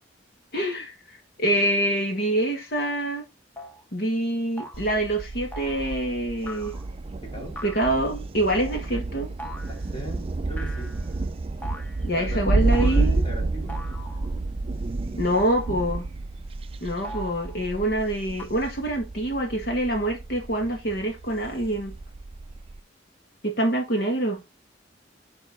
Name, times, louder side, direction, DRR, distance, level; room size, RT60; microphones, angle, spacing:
voice 1, 0.5-3.2 3.9-6.7 7.6-9.3 12.0-13.2 15.2-16.1 16.8-21.9 23.4-24.4, right 1 dB, 60° left, 1.8 m, -26 dB
sound 1, 2.8-2.9 3.6-3.8 4.6-4.9 5.5-5.9 6.5-6.9 7.6-7.9 8.6-8.8 9.4-9.9 10.6-11.2 11.6-12.1 12.7-13.2 13.7-14.4 15.3-16.0 17.0-17.7 18.4-18.5, left 1 dB, 10° left, 1.0 m, -41 dB
Thunder, 4.7-22.8, right 2 dB, 30° right, 0.4 m, -30 dB
voice 2, 7.2-7.6 9.7-11.0 12.1-12.7 13.2-13.8 17.0-17.2, equal, 30° left, 2.8 m, -40 dB
9.2 x 5.4 x 3.6 m
head